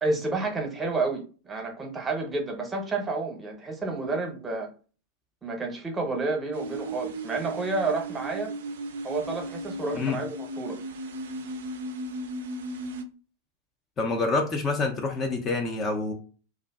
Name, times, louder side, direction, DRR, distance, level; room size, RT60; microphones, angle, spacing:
voice 1, 0.0-4.7 5.4-8.5 9.0-10.8, right 3 dB, 15° right, 2 dB, 0.8 m, -30 dB
sound 1, 6.5-13.0, right 1 dB, 60° right, 0.4 m, -36 dB
voice 2, 14.0-16.1, left 3 dB, 25° left, 3 dB, 0.4 m, -27 dB
2.5 x 2.4 x 2.3 m, 0.37 s
figure-of-eight pair, 90°, 0 cm